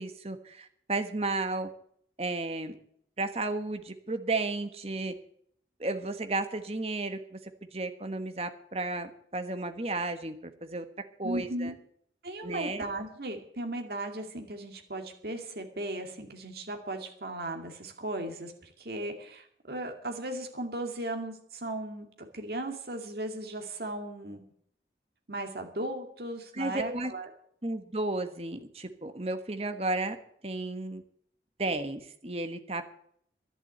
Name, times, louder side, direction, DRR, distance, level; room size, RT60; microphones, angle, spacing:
voice 1, 0.0-1.7 2.2-2.8 3.2-5.1 5.8-7.4 7.7-10.8 11.2-11.7 12.4-12.8 26.5-27.1 27.6-30.2 30.4-31.0 31.6-32.9, right 2 dB, 35° right, 8 dB, 1.3 m, -33 dB
voice 2, 11.2-11.7 12.2-24.4 25.3-27.3, right 1 dB, 60° right, 4 dB, 2.3 m, -37 dB
11.5 x 11.0 x 7.9 m, 0.66 s
head